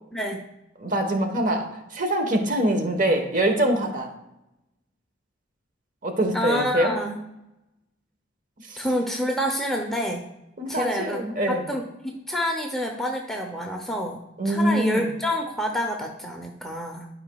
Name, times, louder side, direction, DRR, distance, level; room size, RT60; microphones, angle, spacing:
voice 1, 0.8-1.7 1.9-4.1 6.0-6.9 8.7-8.8 10.6-11.6 14.4-15.1, right 1 dB, 45° right, 5 dB, 1.0 m, -24 dB
voice 2, 6.3-7.2 8.8-10.3 10.7-14.2 14.4-17.1, equal, ahead, 1 dB, 0.6 m, -28 dB
12.5 x 4.9 x 2.2 m, 0.90 s
head